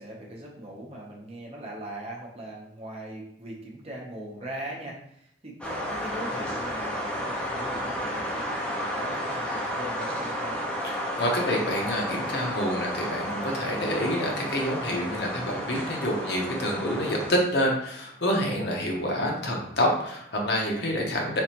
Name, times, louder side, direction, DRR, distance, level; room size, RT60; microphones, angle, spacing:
voice 1, 0.0-5.0 5.4-10.6, right 1 dB, 35° right, -2 dB, 0.8 m, -40 dB
sound 1, 5.6-17.3, equal, 5° left, 0.7 m, -32 dB
voice 2, 10.8-21.4, equal, 65° left, 0 dB, 0.8 m, -27 dB
3.4 x 3.2 x 2.9 m, 0.74 s
head